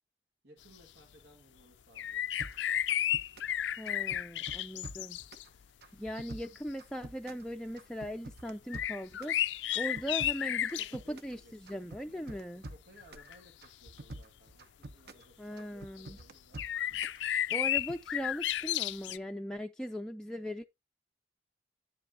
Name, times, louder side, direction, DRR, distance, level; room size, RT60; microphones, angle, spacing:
voice 1, 0.4-2.3 9.9-10.2 10.8-11.5 12.1-16.6, equal, 85° right, 2.3 m, -60 dB
sound 1, 2.0-5.4 6.2-6.3 8.7-10.9 13.0-13.4 14.1-14.2 16.0-16.1 16.6-19.2, left 12 dB, 80° left, 0.4 m, -33 dB
sound 2, 2.4-3.6 3.9-5.5 5.8-7.5 7.8-9.4 9.7-11.4 11.7-13.3 13.6-15.3 15.6-17.2 17.5-18.0, right 1 dB, 60° right, 0.9 m, -47 dB
voice 2, 3.8-5.2 5.9-9.3 9.7-12.6 15.4-16.2 17.5-20.6, equal, 5° left, 0.4 m, -39 dB
9.6 x 7.6 x 2.8 m
head